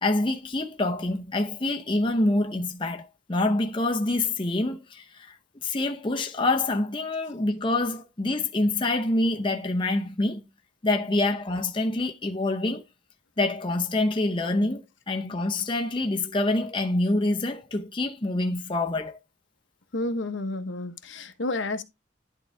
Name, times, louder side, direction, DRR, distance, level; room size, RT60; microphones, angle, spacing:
voice 1, 0.0-5.4 5.6-10.4 10.8-12.8 13.4-19.2, left 2 dB, 25° left, 0.7 m, -26 dB
voice 2, 19.9-21.8, left 2 dB, 85° left, 1.1 m, -30 dB
10.5 x 3.9 x 3.3 m
head